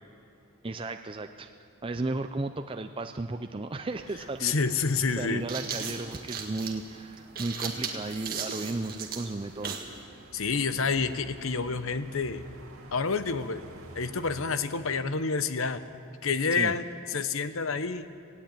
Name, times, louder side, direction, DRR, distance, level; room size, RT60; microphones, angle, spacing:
voice 1, 0.6-1.5 1.8-4.5 5.2-9.8 16.5-16.7, right 2 dB, 25° right, 7 dB, 0.5 m, -34 dB
sound 1, 3.9-14.5, right 2 dB, 70° right, 2.2 m, -51 dB
sound 2, 4.1-4.2 5.2-9.9, right 6 dB, 40° right, 1.8 m, -36 dB
voice 2, 4.4-5.4 10.3-12.4 12.9-13.6 14.0-15.8 16.2-16.8 17.1-18.1, left 4 dB, 65° left, 12 dB, 0.8 m, -28 dB
18.0 x 16.0 x 8.9 m, 2.8 s
head